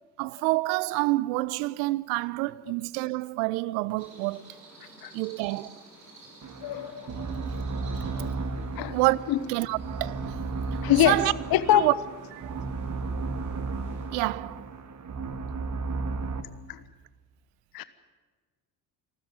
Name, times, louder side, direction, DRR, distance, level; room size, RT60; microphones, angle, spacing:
voice 1, 0.2-4.6 5.1-5.8 8.0-8.1 8.9-9.2 9.5-10.4 11.0-11.3 11.7-11.9 12.3-12.7 14.1-14.7, right 22 dB, 60° right, 0.8 m, -28 dB
sound 1, 4.0-14.1, right 2 dB, 80° right, 6.0 m, -52 dB
sound 2, 6.4-16.4, right 3 dB, 35° right, 2.0 m, -34 dB
voice 2, 6.6-7.4 8.1-8.4 8.8-9.0 9.3-9.4 10.8-11.2 11.5-11.9 16.7-16.8 17.7-17.8, left 12 dB, 45° left, 1.3 m, -24 dB
27.5 x 13.5 x 9.2 m
figure-of-eight pair, 60°, 50 cm